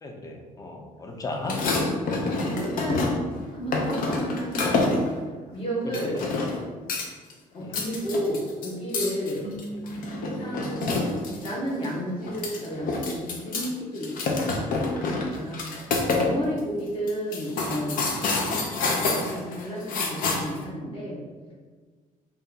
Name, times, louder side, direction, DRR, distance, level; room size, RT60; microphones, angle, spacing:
voice 1, 0.0-1.6 4.5-4.9 5.9-6.3 7.6-7.8 9.8-9.9 10.7-10.8 18.5-18.8, left 2 dB, 25° left, 2 dB, 0.5 m, -37 dB
sound 1, 1.4-3.3 3.7-5.1 5.9-6.6 6.9-7.3 7.6-11.5 11.8-11.9 12.2-13.7 14.0-16.3 16.6-16.7 17.1-20.6, left 3 dB, 75° left, 0.6 m, -27 dB
voice 2, 2.3-3.2 3.5-5.0 5.5-6.2 7.5-9.5 10.2-11.0 11.4-15.7 16.2-18.4 18.8-21.2, equal, 40° left, -4 dB, 1.1 m, -32 dB
sound 2, 9.4-12.8, right 2 dB, 45° right, 0.6 m, -41 dB
4.1 x 2.3 x 3.8 m, 1.5 s
cardioid pair, 145°, 15 cm